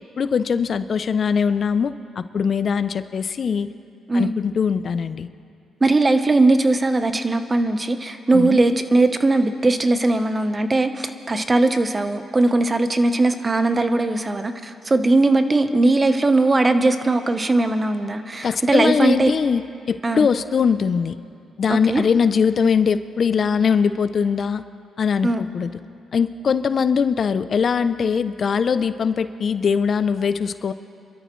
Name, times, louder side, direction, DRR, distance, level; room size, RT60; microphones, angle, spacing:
voice 1, 0.2-3.7 4.1-5.3 8.3-8.6 18.4-21.2 21.6-24.6 25.0-25.7 26.1-30.7, left 6 dB, 55° left, 13 dB, 0.5 m, -21 dB
voice 2, 5.8-19.3 20.0-20.3 21.7-22.0 25.2-25.4, right 2 dB, 25° right, 9 dB, 0.9 m, -19 dB
26.5 x 13.0 x 3.1 m, 2.5 s
cardioid pair, 70°, 0 cm